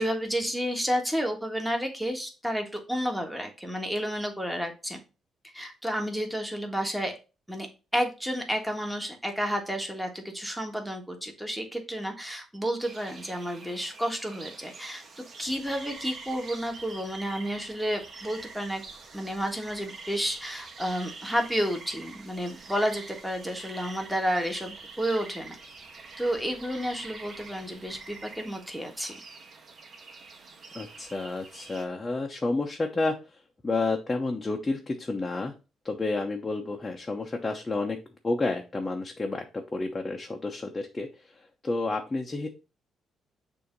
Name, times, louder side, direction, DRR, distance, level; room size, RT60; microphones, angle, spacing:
voice 1, 0.0-5.0 5.5-7.2 7.5-7.7 7.9-15.0 15.4-18.8 19.1-25.6 26.2-29.1, equal, ahead, 2 dB, 1.6 m, -31 dB
sound 1, 12.8-31.9, right 4 dB, 50° right, 1.3 m, -46 dB
voice 2, 30.7-33.2 33.6-35.5 35.8-38.0 38.2-41.1 41.6-42.5, left 3 dB, 25° left, 1 dB, 0.9 m, -30 dB
6.8 x 2.9 x 5.2 m, 0.31 s
cardioid pair, 90°, 0 cm